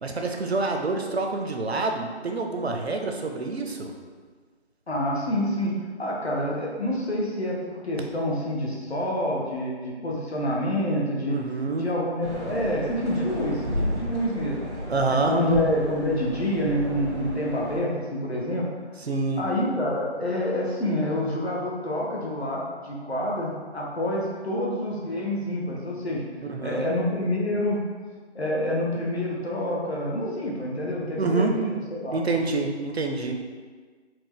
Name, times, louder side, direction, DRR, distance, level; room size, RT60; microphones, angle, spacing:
voice 1, 0.0-3.9 11.3-11.9 14.9-15.3 19.0-19.4 26.5-26.9 31.2-31.5 32.1-33.4, right 3 dB, 65° right, 3 dB, 0.5 m, -27 dB
voice 2, 4.9-5.7 6.0-11.4 11.8-14.6 15.2-18.7 19.4-26.2 26.6-27.8 28.3-32.2, left 1 dB, 65° left, -3 dB, 0.9 m, -27 dB
sound 1, 12.2-17.8, equal, 90° right, 1.0 m, -33 dB
4.4 x 2.1 x 3.0 m, 1.5 s
figure-of-eight pair, 165°, 34 cm